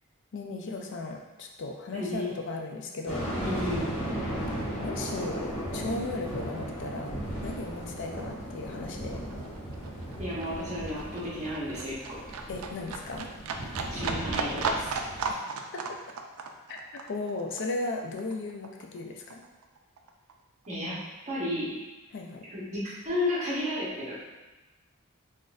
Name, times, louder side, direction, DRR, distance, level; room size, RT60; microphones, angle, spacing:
voice 1, 0.3-3.3 4.8-5.4 5.7-9.3 12.5-13.3 15.3-16.0 16.7-19.4 22.1-22.4, left 2 dB, 60° left, 2 dB, 0.4 m, -36 dB
voice 2, 1.9-2.3 3.4-3.9 10.2-12.2 13.9-14.9 20.7-21.0 21.3-21.9 22.5-24.2, left 1 dB, 35° right, -8 dB, 1.1 m, -32 dB
sound 1, 3.1-15.3, right 1 dB, 30° left, 1.3 m, -36 dB
Livestock farm animals working animals, 7.6-7.7 8.0-19.0 19.3-20.3 20.6-20.7, right 4 dB, 85° right, 0.3 m, -36 dB
3.9 x 2.5 x 2.4 m, 1.1 s
head